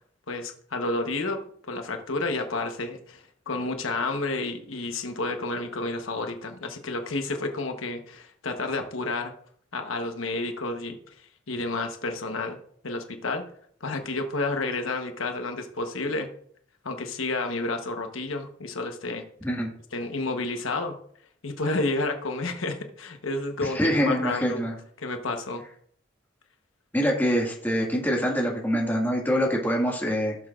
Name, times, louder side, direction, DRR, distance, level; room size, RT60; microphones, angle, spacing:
voice 1, 0.3-1.4 1.7-9.3 9.7-11.0 11.5-12.6 12.8-13.4 13.8-16.3 16.8-19.3 19.9-21.0 21.4-24.7 25.0-25.6, left 2 dB, 90° left, 5 dB, 1.1 m, -30 dB
voice 2, 23.6-24.7 26.9-30.4, equal, 10° left, -2 dB, 1.9 m, -25 dB
15.5 x 6.8 x 2.5 m, 0.62 s
head